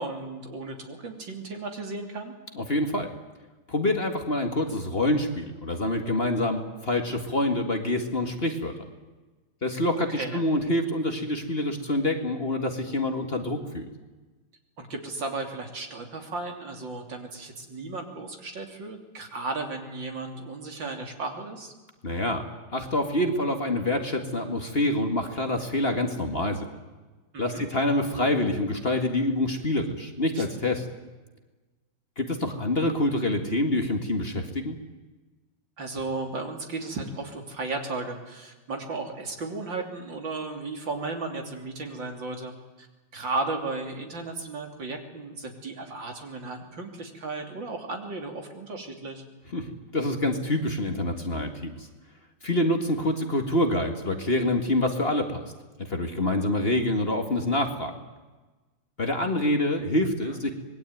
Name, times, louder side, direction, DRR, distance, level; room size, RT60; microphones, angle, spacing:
voice 1, 0.0-2.3 10.0-10.4 14.8-21.7 27.3-27.7 30.4-30.5 35.8-42.9 43.1-49.2 60.2-60.4, right 3 dB, 70° right, 4 dB, 3.8 m, -35 dB
voice 2, 2.6-3.1 3.7-8.7 9.6-13.9 22.0-22.4 22.7-26.7 27.4-30.8 32.2-34.8 49.5-51.9 52.4-55.5 55.9-57.9 59.0-60.5, left 1 dB, 30° left, 5 dB, 2.1 m, -26 dB
25.5 x 21.0 x 9.4 m, 1.2 s
omnidirectional pair, 2.1 m